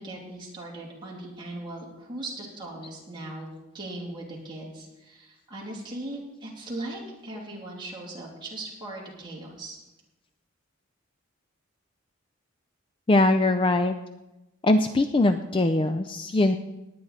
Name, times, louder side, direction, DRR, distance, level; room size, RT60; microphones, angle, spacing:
voice 1, 0.0-3.5 3.7-9.8, right 1 dB, 20° right, -3 dB, 2.8 m, -39 dB
voice 2, 13.1-13.9 14.6-16.6, left 2 dB, 25° left, 9 dB, 0.4 m, -21 dB
19.0 x 9.3 x 4.1 m, 1.0 s
head